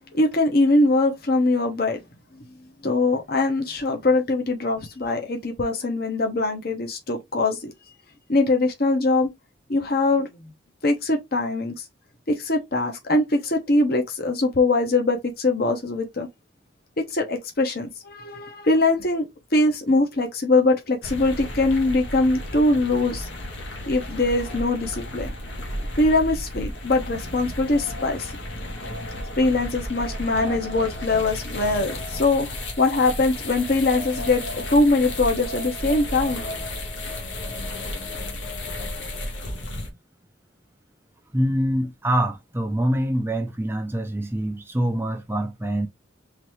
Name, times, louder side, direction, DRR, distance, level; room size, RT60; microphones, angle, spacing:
voice 1, 0.1-2.0 2.8-7.7 8.3-9.3 9.7-10.5 10.8-11.8 12.3-16.3 17.0-19.2 19.5-23.3 23.9-25.3 26.0-28.3 29.4-32.5 32.8-36.4, left 2 dB, 55° left, 1.1 m, -22 dB
sound 1, 21.0-39.9, left 1 dB, 75° left, 1.3 m, -33 dB
voice 2, 41.3-45.9, right 1 dB, 10° right, 0.5 m, -25 dB
4.0 x 3.3 x 3.1 m
head